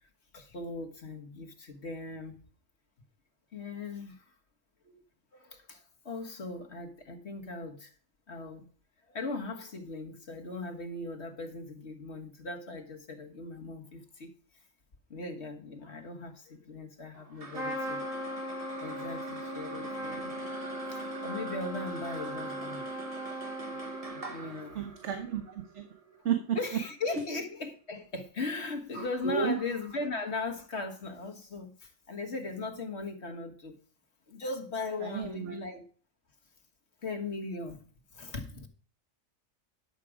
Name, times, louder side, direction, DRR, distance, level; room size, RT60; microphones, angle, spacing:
voice 1, 0.3-2.4 3.5-4.2 4.8-5.0 5.3-7.9 8.3-8.7 9.1-14.3 15.1-18.0 18.8-20.3 20.9-22.9 24.1-24.8 26.6-33.8 34.3-35.8 37.0-37.8 38.1-38.7, left 3 dB, 55° left, 1.8 m, -38 dB
sound 1, 17.1-27.8, right 3 dB, 30° right, 1.1 m, -45 dB
Trumpet, 17.5-24.4, equal, 85° right, 2.9 m, -38 dB
voice 2, 24.7-25.4 25.7-25.8 26.2-26.6 29.2-29.5 35.0-35.6, right 8 dB, 65° right, 1.3 m, -31 dB
11.0 x 7.5 x 4.9 m
omnidirectional pair, 1.4 m